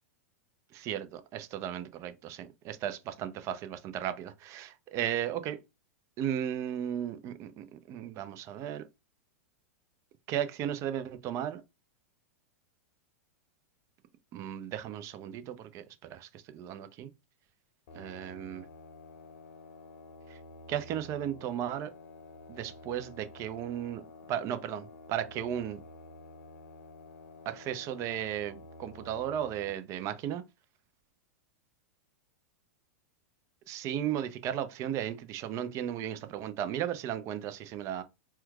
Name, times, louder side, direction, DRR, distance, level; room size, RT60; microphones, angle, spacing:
voice 1, 0.7-5.6 6.2-8.9 10.3-11.6 14.3-15.8 16.1-17.1 17.9-18.7 20.3-20.4 20.7-21.9 22.5-24.0 24.3-25.8 27.5-30.4 33.7-38.0, right 10 dB, 40° right, 0.5 m, -35 dB
sound 1, 17.9-29.8, left 2 dB, 65° left, 0.7 m, -50 dB
4.4 x 2.3 x 2.3 m
hypercardioid pair, 105°, 8 cm